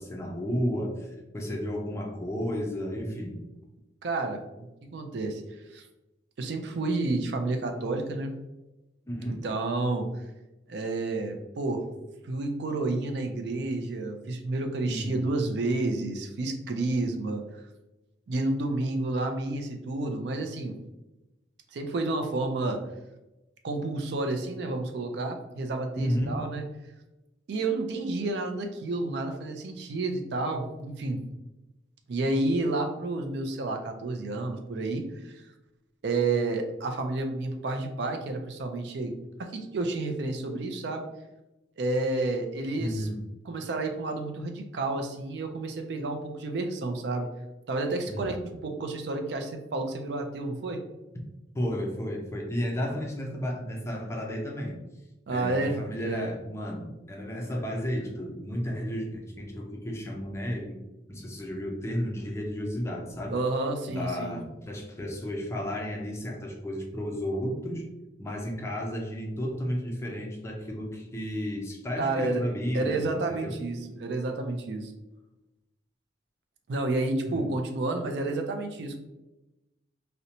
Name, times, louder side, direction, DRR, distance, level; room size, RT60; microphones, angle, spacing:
voice 1, 0.0-3.4 9.1-9.5 14.9-15.3 26.0-26.4 42.8-43.2 48.1-48.5 51.5-54.8 55.3-60.8 61.1-63.4 63.9-67.8 68.2-73.0 73.3-73.5 77.3-77.5, equal, 15° left, 0 dB, 0.4 m, -33 dB
voice 2, 4.0-4.4 4.8-5.4 5.7-5.9 6.4-8.3 9.3-10.1 10.7-11.8 12.2-17.6 18.3-20.7 21.7-22.8 23.6-26.6 27.5-31.2 32.1-35.4 36.0-39.1 39.4-41.0 41.8-43.1 43.5-47.3 47.7-48.4 48.6-50.8 55.3-56.3 63.3-64.4 72.0-72.4 72.7-74.9 76.7-79.0, right 2 dB, 65° right, 5 dB, 0.4 m, -30 dB
2.6 x 2.1 x 2.8 m, 0.98 s
head